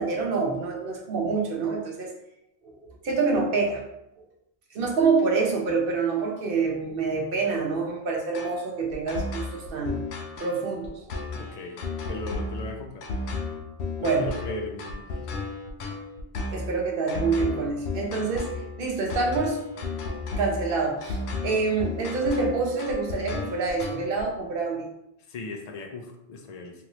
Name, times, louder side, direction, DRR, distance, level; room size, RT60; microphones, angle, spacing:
voice 1, 0.0-2.1 3.0-3.8 4.7-10.1 10.4-11.0 14.0-14.3 16.5-18.5 18.8-19.6 20.4-21.2 21.4-24.9, right 4 dB, 60° right, 0 dB, 0.9 m, -26 dB
sound 1, 8.3-24.2, left 3 dB, 85° left, 0.8 m, -33 dB
voice 2, 11.3-11.8 12.1-13.1 14.0-15.2 25.3-26.7, left 2 dB, 55° left, 3 dB, 0.5 m, -37 dB
3.0 x 2.6 x 3.0 m, 0.82 s
omnidirectional pair, 1.1 m